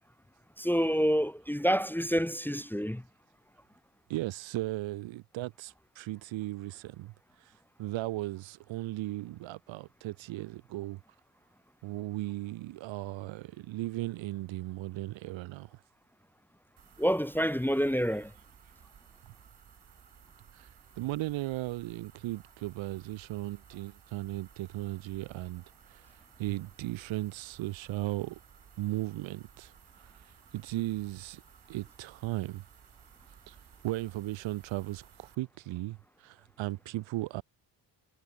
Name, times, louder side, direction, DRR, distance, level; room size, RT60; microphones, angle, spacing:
voice 1, 0.6-3.0 17.0-18.3, equal, 5° left, 0.8 m, -28 dB
voice 2, 4.1-7.1 7.8-11.0 11.8-15.8 20.5-20.7 21.0-25.6 25.9-26.0 26.4-28.4 28.8-29.7 30.0-30.2 30.5-31.4 31.7-32.6 33.5-33.6 33.8-37.4, right 17 dB, 80° right, 1.1 m, -36 dB
sound 1, 16.8-35.4, right 8 dB, 60° right, 5.1 m, -58 dB
supercardioid pair, 50°, 45 cm